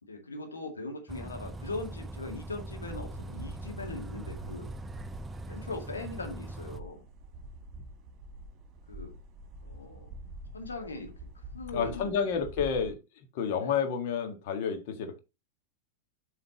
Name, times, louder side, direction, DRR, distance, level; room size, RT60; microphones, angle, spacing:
voice 1, 0.0-4.7 5.5-7.0 8.9-9.1 9.6-10.1 10.5-11.1 11.5-12.2 13.4-13.8, left 3 dB, 75° left, 2.1 m, -40 dB
Bus, 1.1-6.8, right 2 dB, 15° right, 0.4 m, -41 dB
sound 1, 2.7-12.9, right 1 dB, 30° right, 2.0 m, -46 dB
voice 2, 11.7-13.0 13.3-15.2, left 6 dB, 50° left, 1.6 m, -30 dB
8.1 x 5.6 x 2.9 m
figure-of-eight pair, 90°, 0 cm